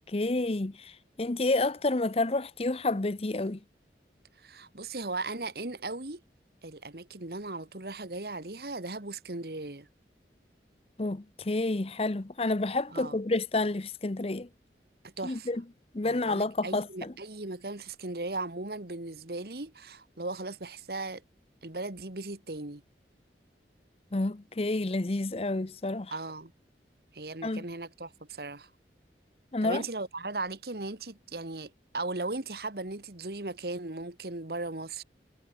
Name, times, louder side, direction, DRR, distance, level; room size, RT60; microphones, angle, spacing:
voice 1, 0.1-3.6 11.0-14.5 15.2-15.6 15.9-17.1 24.1-26.1 27.4-27.6 29.5-29.8, left 2 dB, 35° left, 0.7 m, -29 dB
voice 2, 4.4-6.2 6.6-9.9 12.9-13.2 15.2-15.5 16.0-21.2 21.6-22.8 26.1-26.5 27.1-28.7 29.6-35.0, right 2 dB, 60° right, 1.8 m, -37 dB
head